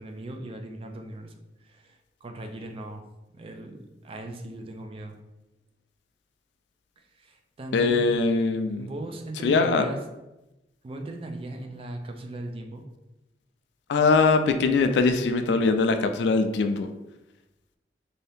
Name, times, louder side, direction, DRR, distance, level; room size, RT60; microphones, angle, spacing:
voice 1, 0.0-1.3 1.6-3.0 3.3-5.1 7.2-8.1 8.7-10.0 10.8-12.8, right 1 dB, 30° right, 4 dB, 0.3 m, -38 dB
voice 2, 7.7-8.9 9.4-9.9 13.9-16.9, left 4 dB, 70° left, 7 dB, 0.3 m, -22 dB
2.7 x 2.6 x 3.4 m, 0.98 s
head